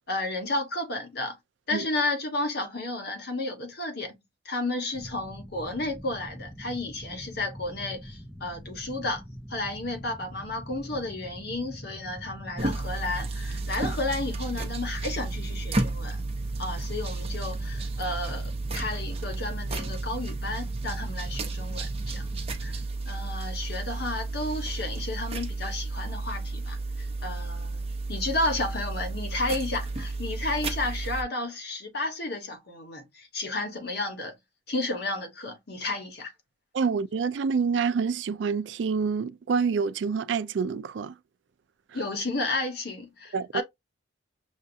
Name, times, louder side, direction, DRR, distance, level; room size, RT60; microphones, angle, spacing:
voice 1, 0.1-1.4 1.7-4.2 4.4-9.2 9.5-16.2 16.6-22.3 22.6-22.8 23.0-34.4 34.7-36.3 41.9-43.6, left 2 dB, 60° left, 1.3 m, -32 dB
sound 1, 4.9-22.9, equal, 5° left, 0.5 m, -44 dB
sound 2, 12.6-31.2, right 2 dB, 30° right, 0.8 m, -32 dB
voice 2, 36.7-41.1 43.3-43.6, right 5 dB, 70° right, 0.4 m, -27 dB
6.4 x 2.3 x 2.6 m
head